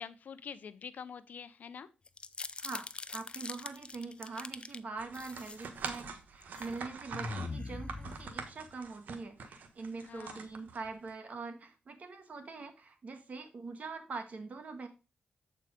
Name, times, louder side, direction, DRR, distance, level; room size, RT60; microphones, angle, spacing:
voice 1, 0.0-1.9 10.0-10.5, left 7 dB, 70° left, 14 dB, 0.7 m, -46 dB
sound 1, 2.1-4.8 5.1-6.0 6.4-6.7 7.1-8.7, left 3 dB, 35° left, 0.6 m, -42 dB
voice 2, 3.1-14.9, right 4 dB, 55° right, 6 dB, 1.8 m, -43 dB
sound 2, 5.0-11.1, right 5 dB, 75° right, 1.3 m, -44 dB
7.7 x 4.7 x 5.1 m, 0.31 s
cardioid pair, 65°, 3 cm